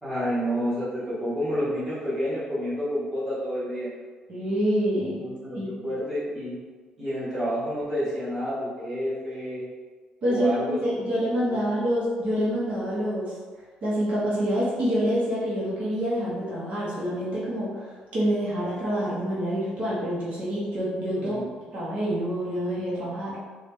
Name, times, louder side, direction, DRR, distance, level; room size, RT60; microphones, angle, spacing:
voice 1, 0.0-3.9 5.2-6.6 7.0-9.6 10.3-11.0 11.4-11.6 21.1-21.5, equal, 10° right, -11 dB, 1.2 m, -29 dB
voice 2, 4.3-5.2 5.6-5.7 10.2-13.3 13.8-21.4 21.7-23.4, equal, 50° right, -8 dB, 1.0 m, -27 dB
3.9 x 2.3 x 3.5 m, 1.5 s
cardioid pair, 170°, 3 cm